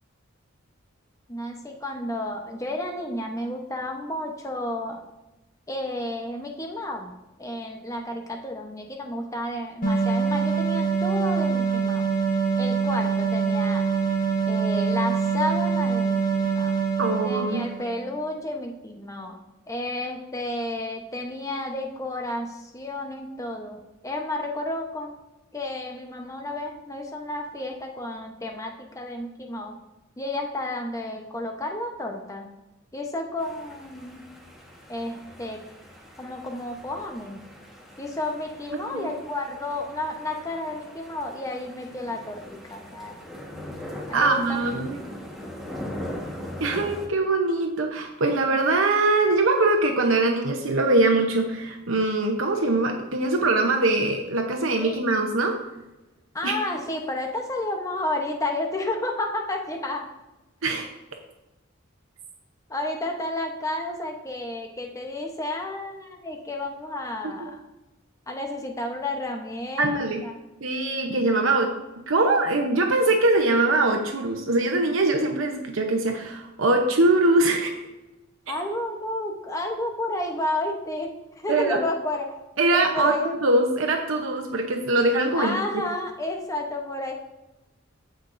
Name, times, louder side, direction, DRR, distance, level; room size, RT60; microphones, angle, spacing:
voice 1, 1.3-5.0 5.7-7.1 7.4-12.1 12.6-13.8 14.5-16.8 17.2-19.4 19.7-25.1 25.5-29.7 30.2-32.5 32.9-34.2 34.9-35.6 36.2-37.4 38.0-42.4 42.7-43.1 44.1-44.6 54.8-55.0 56.3-60.1 62.7-67.6 68.3-70.3 78.5-81.1 81.4-82.4 82.7-83.3 85.3-87.1, left 1 dB, 15° left, 2 dB, 0.9 m, -31 dB
sound 1, 9.8-17.9, right 5 dB, 45° left, 1.2 m, -24 dB
voice 2, 17.0-17.7 38.9-39.1 44.1-45.0 46.6-55.6 56.4-56.5 60.6-60.9 67.2-67.3 69.8-70.2 70.6-71.7 72.1-77.8 81.5-81.8 82.6-85.8, right 2 dB, 85° right, 3 dB, 0.9 m, -22 dB
sound 2, 33.4-47.1, left 1 dB, ahead, 1.4 m, -40 dB
15.0 x 5.3 x 2.6 m, 1.0 s
head